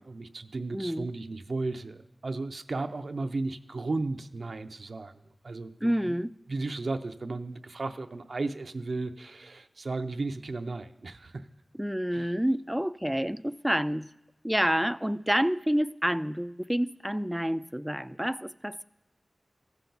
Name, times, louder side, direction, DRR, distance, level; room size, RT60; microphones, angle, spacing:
voice 1, 0.0-5.1 5.4-6.1 6.5-11.5 12.1-12.3, right 3 dB, 70° right, 0.5 m, -35 dB
voice 2, 0.7-1.1 5.8-6.3 11.8-14.1 14.4-18.8, equal, 5° right, 0.3 m, -28 dB
14.5 x 5.7 x 3.9 m
cardioid pair, 50°, 0 cm